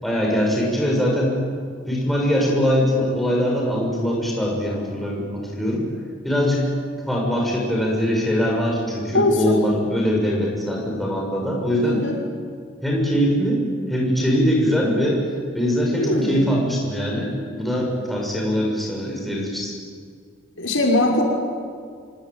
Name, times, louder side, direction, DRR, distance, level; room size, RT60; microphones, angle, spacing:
voice 1, 0.0-1.4 1.9-5.9 6.2-6.7 7.1-12.0 12.8-15.2 15.5-19.7, equal, ahead, -2 dB, 7.1 m, -22 dB
voice 2, 9.1-9.6 11.8-12.1 15.9-16.4 20.6-21.3, left 1 dB, 80° left, 0 dB, 6.0 m, -20 dB
26.0 x 24.0 x 9.3 m, 2.1 s
head